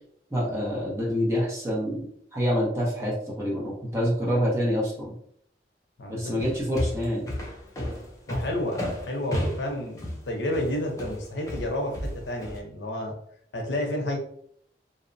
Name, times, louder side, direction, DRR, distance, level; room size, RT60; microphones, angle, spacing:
voice 1, 0.3-2.0 2.3-5.1 6.1-7.3, equal, 15° right, -5 dB, 0.7 m, -26 dB
voice 2, 6.0-6.3 8.3-13.2 13.5-14.2, left 1 dB, 80° left, 2 dB, 0.6 m, -31 dB
sound 1, 6.4-12.6, equal, 20° left, 0.4 m, -32 dB
2.7 x 2.1 x 2.5 m, 0.66 s
head